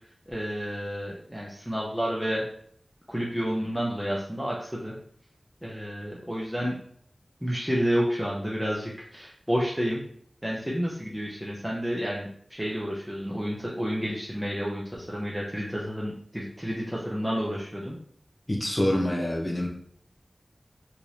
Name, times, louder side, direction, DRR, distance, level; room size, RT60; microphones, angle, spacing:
voice 1, 0.3-2.4 3.1-4.9 5.6-6.8 7.4-10.0 10.4-18.0, equal, ahead, -5 dB, 0.7 m, -30 dB
voice 2, 18.5-19.7, left 1 dB, 30° left, 0 dB, 0.9 m, -26 dB
3.3 x 3.0 x 2.6 m, 0.63 s
wide cardioid pair, 50°, 0 cm